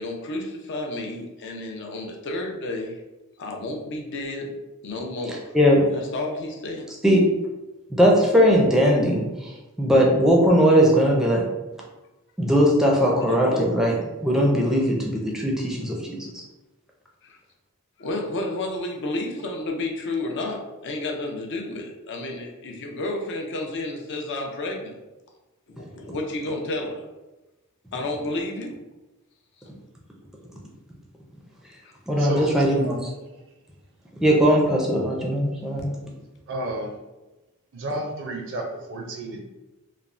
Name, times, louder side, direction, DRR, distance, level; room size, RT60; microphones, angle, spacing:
voice 1, 0.0-3.0 3.4-4.5 4.8-5.4 5.9-6.8 13.0-13.6 17.2-17.4 18.0-25.0 25.7-27.0 27.9-28.7 31.8-31.9, left 2 dB, 55° left, 1 dB, 0.5 m, -31 dB
voice 2, 5.3-5.8 7.0-7.2 8.0-11.5 12.4-16.4 32.1-33.1 34.2-36.0, equal, ahead, -2 dB, 0.4 m, -19 dB
voice 3, 32.2-32.5 36.5-37.0 37.7-39.4, right 1 dB, 60° right, 2 dB, 0.4 m, -31 dB
3.2 x 2.0 x 2.5 m, 1.1 s
head